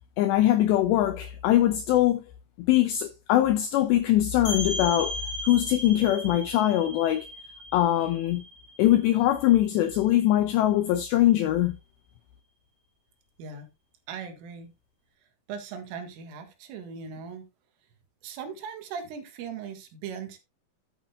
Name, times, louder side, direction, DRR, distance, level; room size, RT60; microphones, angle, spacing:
voice 1, 0.2-2.2 2.6-5.2 5.4-7.3 7.7-8.4 8.8-11.8, left 13 dB, 85° left, 2.5 m, -22 dB
sound 1, 4.5-9.9, left 1 dB, 55° left, 5.3 m, -37 dB
voice 2, 14.1-14.7 15.5-17.5 18.2-20.4, right 6 dB, 80° right, 4.3 m, -39 dB
11.5 x 8.7 x 2.5 m
omnidirectional pair, 5.8 m